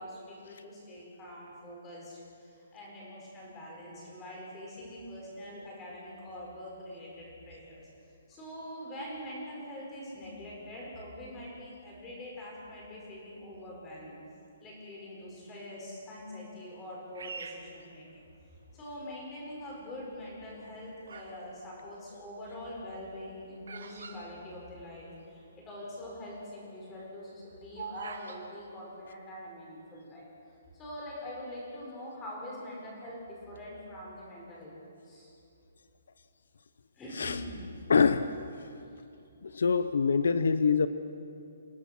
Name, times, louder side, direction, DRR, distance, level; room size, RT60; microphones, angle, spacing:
voice 1, 0.0-7.8 8.3-14.1 14.6-18.1 18.7-30.3 30.7-35.3 37.0-37.6 38.9-39.0, left 1 dB, 10° left, -4 dB, 5.5 m, -44 dB
Bird vocalization bird call bird song, 17.1-18.7 19.3-19.7 20.5-21.4 21.7-25.2 25.5-25.6 25.7-26.1 26.5-28.4, right 5 dB, 75° right, 3.0 m, -45 dB
voice 2, 37.9-38.3 39.4-40.9, left 5 dB, 75° left, 12 dB, 0.9 m, -25 dB
28.5 x 17.5 x 6.2 m, 2.5 s
hypercardioid pair, 180°, 0 cm